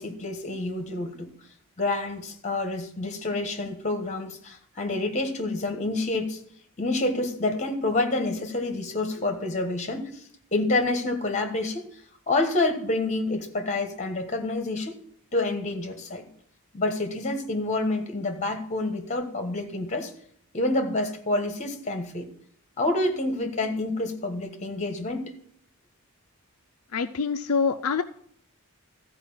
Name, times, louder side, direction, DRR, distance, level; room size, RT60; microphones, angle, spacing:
voice 1, 0.0-1.3 1.8-6.4 6.8-10.2 10.5-11.9 12.3-15.0 15.3-16.3 16.7-20.1 20.5-22.3 22.8-25.3, left 2 dB, 30° left, 6 dB, 1.3 m, -28 dB
voice 2, 26.9-28.0, left 5 dB, 70° left, 7 dB, 0.4 m, -25 dB
14.0 x 4.8 x 7.1 m, 0.65 s
head